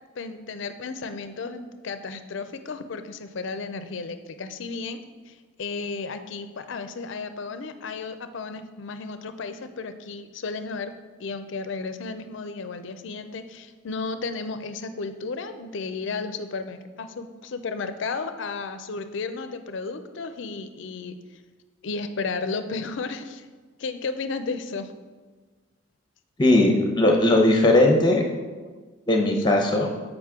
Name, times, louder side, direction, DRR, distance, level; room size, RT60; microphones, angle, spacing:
voice 1, 0.2-5.0 5.3-10.9 11.2-21.1 21.8-23.5 23.8-24.9 29.4-29.5, left 4 dB, 60° left, 10 dB, 0.4 m, -33 dB
voice 2, 26.4-28.2 29.1-29.9, left 1 dB, 20° left, 2 dB, 0.7 m, -18 dB
7.3 x 5.0 x 3.6 m, 1.3 s
head